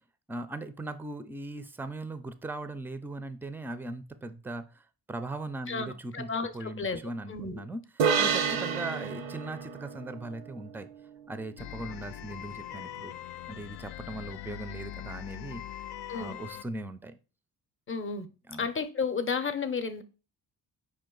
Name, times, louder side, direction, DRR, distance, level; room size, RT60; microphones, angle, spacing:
voice 1, 0.3-6.3 6.5-7.8 8.2-10.9 11.3-13.1 13.5-15.6 16.1-17.2 18.5-18.7, right 2 dB, 5° right, 0.4 m, -39 dB
voice 2, 5.7-7.0 7.3-7.6 16.1-16.4 17.9-18.3 18.6-20.0, left 5 dB, 25° left, 0.7 m, -32 dB
sound 1, 8.0-11.5, right 6 dB, 90° right, 0.7 m, -30 dB
sound 2, 11.6-16.6, left 11 dB, 65° left, 0.5 m, -41 dB
5.2 x 2.5 x 3.8 m
supercardioid pair, 55°, 45 cm